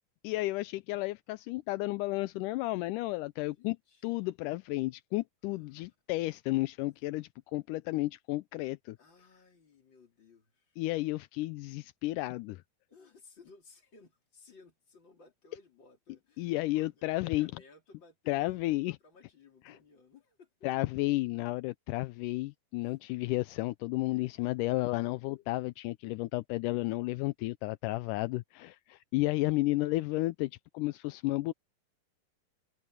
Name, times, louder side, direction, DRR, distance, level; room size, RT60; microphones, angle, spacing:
voice 1, 0.2-3.8 4.0-9.0 10.8-12.6 16.4-17.5 18.3-19.0 19.7-19.8 20.6-31.5, left 19 dB, 80° left, 1.9 m, -32 dB
voice 2, 3.5-4.1 5.5-5.8 9.0-10.8 12.9-20.7 22.8-22.9 24.1-25.4, left 4 dB, 30° left, 3.9 m, -60 dB
omnidirectional pair, 4.1 m